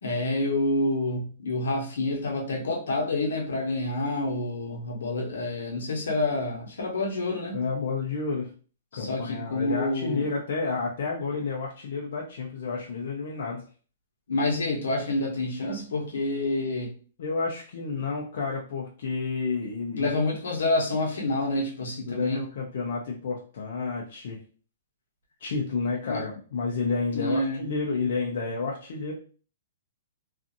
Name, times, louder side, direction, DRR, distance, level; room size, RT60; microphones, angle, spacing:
voice 1, 0.0-7.6 8.9-10.3 14.3-16.9 19.9-22.4 26.0-26.2 27.1-27.7, left 2 dB, 85° left, 0 dB, 0.9 m, -28 dB
voice 2, 7.5-8.5 8.9-13.6 17.2-20.1 22.1-24.4 25.4-29.1, left 4 dB, 65° left, -2 dB, 0.5 m, -30 dB
2.5 x 2.4 x 2.5 m, 0.40 s
hypercardioid pair, 150°, 0 cm